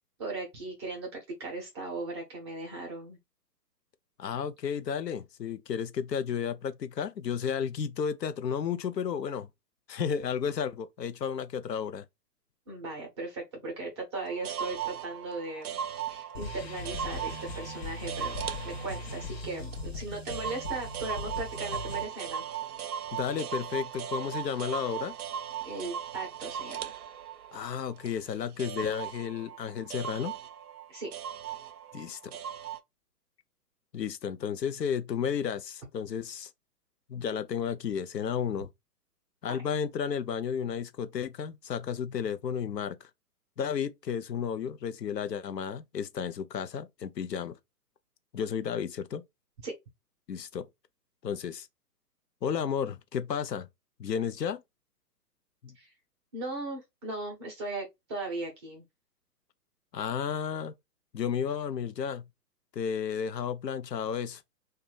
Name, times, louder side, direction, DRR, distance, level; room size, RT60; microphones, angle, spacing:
voice 1, 0.2-3.2 12.7-15.8 16.1-18.3 18.6-22.4 25.6-26.9 30.9-31.1 39.5-39.6 49.6-49.7 55.8-55.9 56.3-58.8, right 2 dB, 15° right, 0.6 m, -38 dB
voice 2, 4.2-9.5 9.9-12.0 23.1-25.2 27.5-30.4 31.9-32.3 33.9-36.5 37.1-38.7 39.4-43.0 43.6-47.6 48.3-49.2 50.3-50.7 51.2-51.7 52.4-53.7 54.0-54.6 55.6-55.8 59.9-60.7 61.1-62.3 62.8-64.4, left 7 dB, 85° left, 0.6 m, -32 dB
sound 1, 14.1-32.8, right 9 dB, 65° right, 0.6 m, -38 dB
sound 2, 16.3-22.0, left 2 dB, 40° left, 0.5 m, -39 dB
2.7 x 2.2 x 3.2 m
figure-of-eight pair, 130°, 49 cm